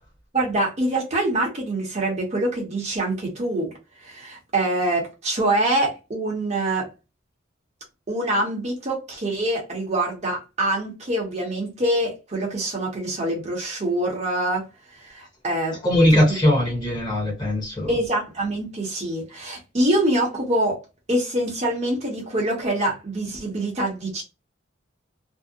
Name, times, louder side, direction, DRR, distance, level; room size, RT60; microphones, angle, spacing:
voice 1, 0.3-3.7 4.0-6.9 8.1-14.7 14.9-15.8 17.9-20.8 21.1-24.2, right 1 dB, 35° right, 0.8 m, -25 dB
voice 2, 15.7-18.0, left 1 dB, 20° left, 1.0 m, -20 dB
2.6 x 2.0 x 2.4 m
head